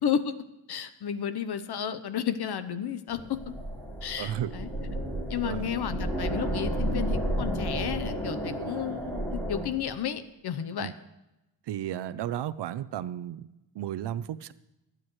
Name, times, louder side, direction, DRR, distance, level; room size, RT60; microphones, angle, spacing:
voice 1, 0.0-0.3 0.7-3.4 4.0-4.7 5.3-10.9, left 8 dB, 60° left, 12 dB, 0.9 m, -32 dB
sound 1, 3.1-9.7, right 1 dB, 5° left, 2.6 m, -32 dB
voice 2, 4.2-4.5 5.4-5.7 10.8-10.9 11.7-13.4 13.8-14.5, right 11 dB, 65° right, 16 dB, 0.6 m, -33 dB
25.0 x 9.1 x 3.1 m, 0.96 s
wide cardioid pair, 145°, 45 cm